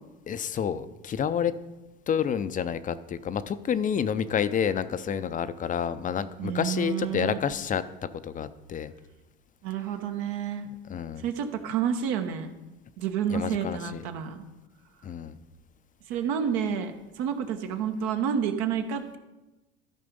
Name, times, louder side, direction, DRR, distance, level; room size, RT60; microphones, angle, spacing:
voice 1, 0.3-1.5 2.1-8.9 10.9-11.2 13.3-14.0 15.0-15.4, left 8 dB, 25° left, 13 dB, 0.5 m, -29 dB
voice 2, 6.4-7.4 9.6-10.7 11.2-12.5 13.0-14.4 16.1-19.2, right 8 dB, 70° right, 6 dB, 1.1 m, -29 dB
13.0 x 5.0 x 5.3 m, 1.1 s
supercardioid pair, 105°, 30 cm